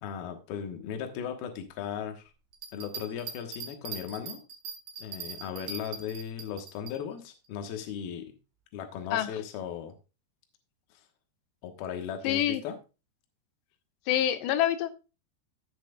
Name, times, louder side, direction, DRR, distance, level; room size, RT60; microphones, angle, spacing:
voice 1, 0.0-2.3 2.7-4.4 5.0-8.3 8.7-10.0 11.6-12.8, left 8 dB, 70° left, 5 dB, 3.0 m, -37 dB
Bell, 2.5-7.0 7.4-7.5, right 6 dB, 85° right, 4.1 m, -41 dB
voice 2, 12.2-12.6 14.1-14.9, left 11 dB, 90° left, 11 dB, 3.0 m, -26 dB
16.5 x 6.0 x 2.4 m, 0.30 s
omnidirectional pair, 5.0 m